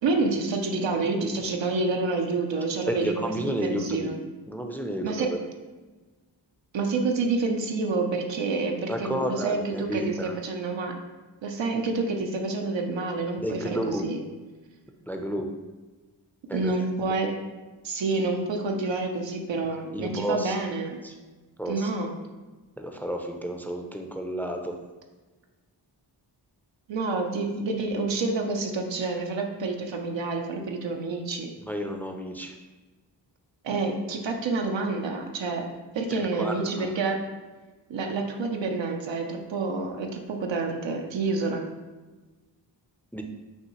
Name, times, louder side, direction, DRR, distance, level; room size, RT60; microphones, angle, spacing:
voice 1, 0.0-3.3 3.6-4.1 5.0-5.3 6.7-10.9 11.4-14.2 16.5-17.3 17.8-21.0 21.7-22.2 26.9-31.5 33.6-35.7 35.9-37.2 37.9-41.7, right 3 dB, 85° right, 3 dB, 0.7 m, -28 dB
voice 2, 2.9-4.1 4.5-5.4 8.9-10.4 13.4-14.0 15.1-15.5 16.5-16.7 19.9-20.5 21.0-21.1 21.6-21.9 22.8-24.8 31.6-32.5 36.4-36.9 43.1-43.2, equal, 5° left, 4 dB, 0.4 m, -31 dB
5.5 x 2.8 x 3.0 m, 1.2 s
cardioid pair, 55°, 44 cm